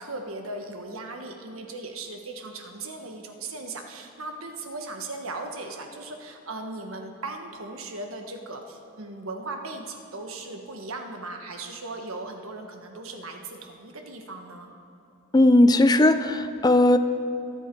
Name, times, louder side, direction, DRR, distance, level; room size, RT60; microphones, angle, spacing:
voice 1, 0.0-14.7, right 2 dB, 85° right, 4 dB, 1.3 m, -38 dB
voice 2, 15.3-17.0, left 1 dB, 20° left, 10 dB, 0.5 m, -17 dB
23.0 x 8.1 x 4.6 m, 2.7 s
head